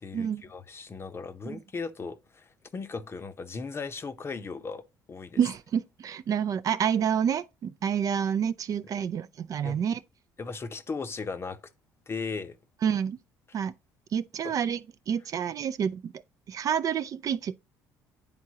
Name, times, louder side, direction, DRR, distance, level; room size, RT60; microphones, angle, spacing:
voice 1, 0.0-5.4 9.6-9.8 10.4-11.6 12.1-12.6 14.4-14.5, left 4 dB, 30° left, 0.7 m, -37 dB
voice 2, 5.4-10.0 12.8-13.2 13.5-13.7 14.1-16.1 16.5-17.5, right 8 dB, 45° right, 0.4 m, -28 dB
9.9 x 3.7 x 2.8 m
supercardioid pair, 85°, 8 cm